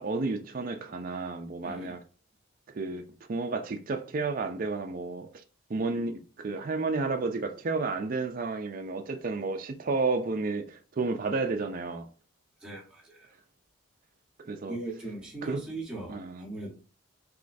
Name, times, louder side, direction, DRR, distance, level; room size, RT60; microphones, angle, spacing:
voice 1, 0.0-2.0 2.7-3.0 3.3-5.3 5.7-12.1 14.4-14.8 15.4-15.6 16.1-16.4, right 3 dB, 40° right, 0.4 m, -31 dB
voice 2, 1.6-1.9 12.6-13.3 14.7-16.7, right 2 dB, 5° right, 1.1 m, -39 dB
3.6 x 3.0 x 2.5 m
head